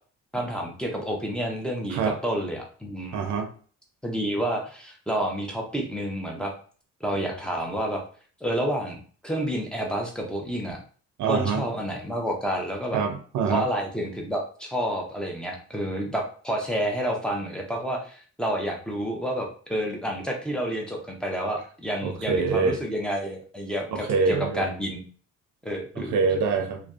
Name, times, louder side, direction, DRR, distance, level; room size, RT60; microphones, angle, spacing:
voice 1, 0.3-3.2 4.0-6.5 7.0-8.0 8.4-9.0 9.2-10.8 11.3-13.0 13.5-25.0 25.6-26.2, equal, 5° left, 0 dB, 0.6 m, -29 dB
voice 2, 3.1-3.5 11.2-11.6 12.9-13.6 22.0-22.8 23.9-24.7 26.0-26.8, right 5 dB, 75° right, 6 dB, 0.6 m, -25 dB
2.5 x 2.1 x 2.4 m, 0.43 s
cardioid pair, 90°, 30 cm